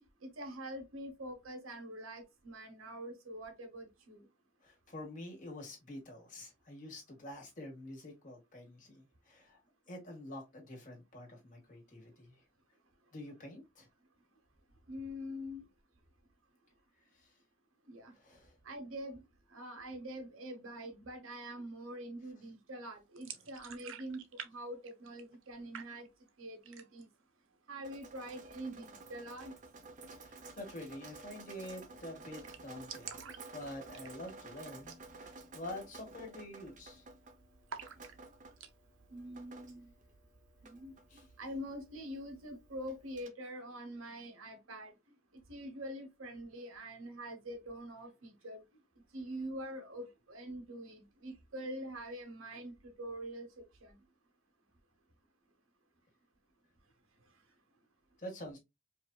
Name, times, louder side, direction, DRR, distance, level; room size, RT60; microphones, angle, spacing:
voice 1, 0.2-4.3 14.9-15.6 17.9-18.1 18.6-19.2 19.5-26.1 26.4-27.1 27.7-29.5 39.1-39.9 40.6-44.9 45.5-48.6 49.1-53.5 53.8-54.0, equal, 90° right, 1.2 m, -45 dB
voice 2, 4.6-9.6 9.9-12.4 13.1-13.9 17.0-17.4 18.1-18.6 30.2-33.2 33.5-37.1 41.1-41.3 58.2-58.6, left 1 dB, 40° left, 1.8 m, -47 dB
sound 1, 23.2-24.5 24.8-25.5 25.7-26.3 26.6-27.2 27.5-27.6 27.9-28.6 30.3-30.4 30.7-30.8 31.0-31.1 31.5-31.8 32.1-32.2 32.4-34.5 34.8-35.1 35.4-35.5 36.1-36.3 36.6-37.2 37.7-38.7, right 7 dB, 70° right, 0.7 m, -49 dB
Drip, 27.8-43.3, right 3 dB, 40° right, 0.6 m, -53 dB
4.9 x 2.7 x 2.4 m
head